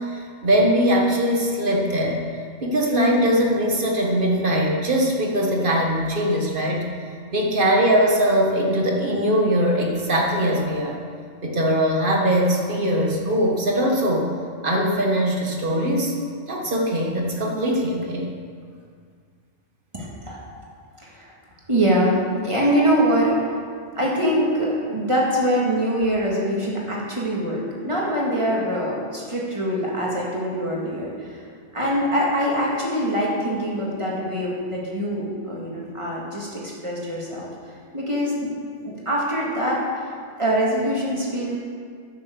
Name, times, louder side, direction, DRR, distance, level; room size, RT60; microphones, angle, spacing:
voice 1, 0.0-2.2 2.6-6.9 7.3-11.0 11.4-14.3 14.6-16.1 16.5-18.3, equal, 45° right, 0 dB, 1.7 m, -21 dB
voice 2, 19.9-20.6 21.0-21.3 21.7-23.4 24.0-31.4 31.7-37.5 37.9-38.5 38.8-41.6, equal, 25° right, -4 dB, 2.3 m, -24 dB
10.0 x 7.3 x 7.0 m, 2.1 s
omnidirectional pair, 1.3 m